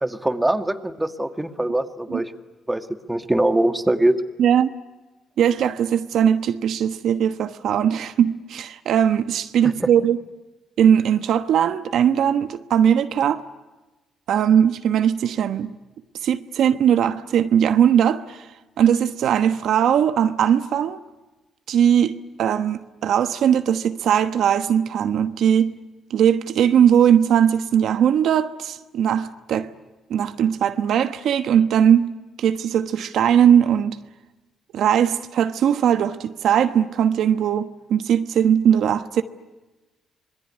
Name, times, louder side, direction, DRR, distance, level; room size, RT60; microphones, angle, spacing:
voice 1, 0.0-2.3 2.7-4.2 9.8-9.9, right 1 dB, 10° right, 1.9 m, -22 dB
voice 2, 4.4-4.7 5.4-10.2 10.8-13.4 14.3-15.7 16.2-18.5 18.8-21.0 21.7-25.7 26.1-29.7 30.1-34.0 34.7-39.2, right 9 dB, 75° right, 1.1 m, -19 dB
26.5 x 21.5 x 9.9 m
cardioid pair, 90°, 0 cm